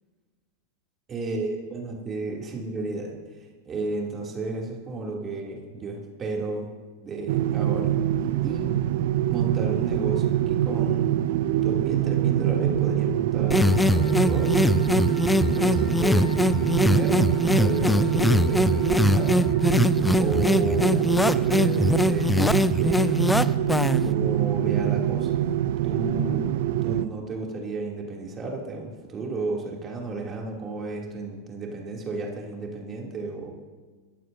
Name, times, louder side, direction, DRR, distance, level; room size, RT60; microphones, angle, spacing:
voice 1, 1.1-6.7 7.0-7.9 8.4-8.8 9.2-11.2 11.6-15.1 15.4-16.3 16.8-19.5 20.2-22.3 22.7-23.5 24.0-25.4 25.8-33.5, right 3 dB, 25° right, -1 dB, 2.9 m, -33 dB
sound 1, 7.3-27.1, right 11 dB, 55° right, 0.6 m, -24 dB
Wind instrument woodwind instrument, 13.5-19.6, left 2 dB, 60° left, 4.0 m, -44 dB
sound 2, 13.5-24.1, left 2 dB, 5° left, 0.5 m, -22 dB
28.0 x 14.0 x 2.7 m, 1.4 s
figure-of-eight pair, 90°, 0 cm